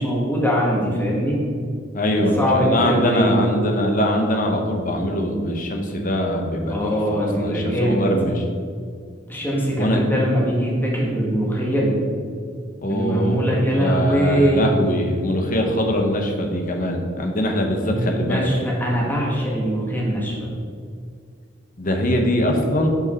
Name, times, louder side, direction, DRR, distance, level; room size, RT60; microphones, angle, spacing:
voice 1, 0.0-1.4 2.1-3.4 6.7-8.1 9.3-12.0 12.9-14.7 17.9-20.5, equal, 10° left, -4 dB, 1.6 m, -22 dB
voice 2, 1.9-8.4 9.8-10.0 12.8-13.4 13.8-18.5 21.8-22.9, left 1 dB, 45° left, 3 dB, 0.9 m, -22 dB
6.5 x 5.5 x 4.4 m, 2.2 s
head